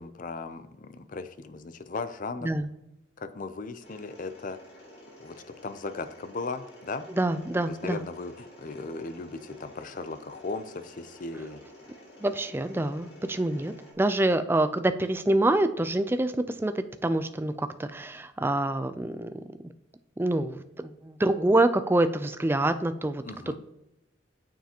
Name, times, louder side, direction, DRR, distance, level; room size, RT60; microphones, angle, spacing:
voice 1, 0.0-2.5 3.2-4.6 5.2-5.3 5.6-7.1 7.7-11.6 23.2-23.6, left 3 dB, 45° left, 11 dB, 0.5 m, -37 dB
Mechanisms, 3.8-13.9, left 1 dB, 60° left, 2.7 m, -51 dB
voice 2, 7.2-8.0 12.2-19.4 20.2-23.2, right 1 dB, 10° right, 10 dB, 0.3 m, -26 dB
9.1 x 7.3 x 2.9 m, 0.90 s
head